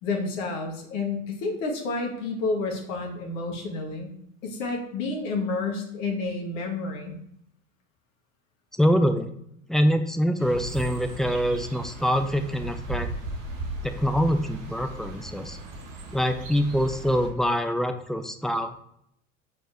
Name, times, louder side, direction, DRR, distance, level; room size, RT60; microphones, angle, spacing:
voice 1, 0.0-4.1 4.4-7.2, left 3 dB, 65° left, 1 dB, 1.9 m, -30 dB
voice 2, 8.8-9.3 9.7-13.1 13.8-15.6 16.1-18.7, equal, ahead, 7 dB, 0.8 m, -24 dB
sound 1, 10.4-17.3, right 2 dB, 70° right, 1.6 m, -37 dB
8.4 x 4.5 x 4.6 m, 0.73 s
figure-of-eight pair, 70°, 40 cm